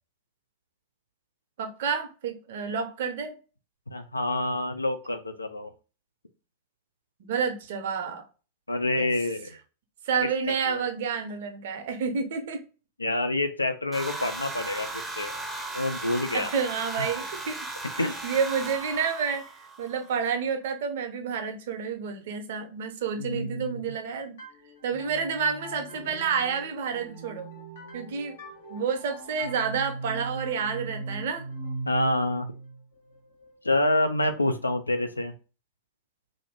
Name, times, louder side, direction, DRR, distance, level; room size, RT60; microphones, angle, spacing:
voice 1, 1.6-3.4 7.2-8.2 9.0-9.1 10.1-12.6 16.3-17.7 17.9-24.4 24.8-27.5 27.9-28.4 28.7-31.4, right 6 dB, 55° right, 8 dB, 0.5 m, -29 dB
voice 2, 3.9-5.7 8.7-9.5 10.7-10.9 13.0-15.4 15.7-16.5 18.0-18.2 23.2-23.9 31.9-32.5 33.6-35.3, left 2 dB, 80° left, 8 dB, 0.3 m, -27 dB
sound 1, 13.9-20.1, right 2 dB, 5° right, 0.6 m, -36 dB
sound 2, 24.4-33.9, right 2 dB, 65° left, 0.7 m, -40 dB
2.6 x 2.5 x 3.2 m, 0.34 s
figure-of-eight pair, 90°, 0 cm